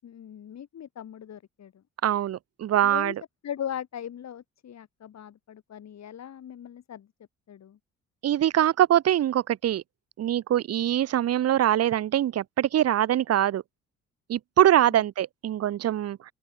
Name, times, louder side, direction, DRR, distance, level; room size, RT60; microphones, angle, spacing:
voice 1, 0.0-1.8 2.8-3.1 3.4-7.1 7.5-7.8 14.9-15.0, left 9 dB, 60° left, 7.5 m, -39 dB
voice 2, 2.0-3.1 8.2-9.8 10.2-13.6 14.3-16.3, right 11 dB, 55° right, 0.8 m, -23 dB
open air
cardioid pair, 90°, 30 cm